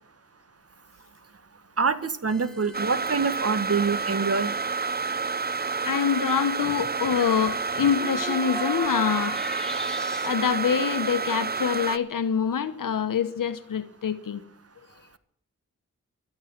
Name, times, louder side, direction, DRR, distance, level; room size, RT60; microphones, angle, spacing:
voice 1, 1.8-4.6, right 5 dB, 50° right, 1.6 m, -25 dB
sound 1, 2.3-10.3, right 1 dB, ahead, 3.8 m, -40 dB
sound 2, 2.7-12.0, right 4 dB, 30° right, 0.7 m, -29 dB
voice 2, 5.8-9.4 10.2-14.4, left 7 dB, 85° left, 1.1 m, -25 dB
18.0 x 13.5 x 5.9 m
wide cardioid pair, 65°, 32 cm